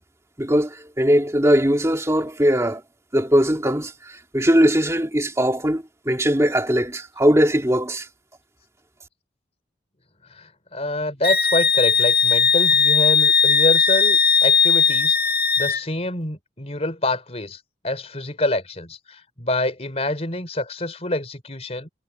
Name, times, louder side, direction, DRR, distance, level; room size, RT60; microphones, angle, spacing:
voice 1, 0.4-2.8 3.1-8.1, equal, 15° right, 2.7 m, -20 dB
voice 2, 10.3-21.9, left 1 dB, 35° left, 3.8 m, -27 dB
Wind instrument woodwind instrument, 11.2-15.8, left 6 dB, 55° left, 1.7 m, -18 dB
head